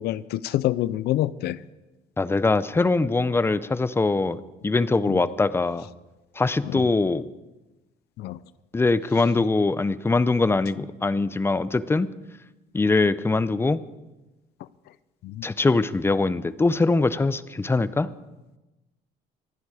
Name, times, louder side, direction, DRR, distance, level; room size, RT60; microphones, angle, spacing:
voice 1, 0.0-1.6 5.1-5.3 6.6-6.9 8.2-8.4 14.6-14.7 15.2-15.5, left 14 dB, 75° left, 18 dB, 0.5 m, -27 dB
voice 2, 2.2-5.9 6.4-7.2 8.7-12.1 12.7-13.8 15.4-18.1, left 3 dB, 15° left, 16 dB, 0.6 m, -22 dB
25.0 x 10.0 x 4.9 m, 1.1 s
cardioid pair, 110°, 17 cm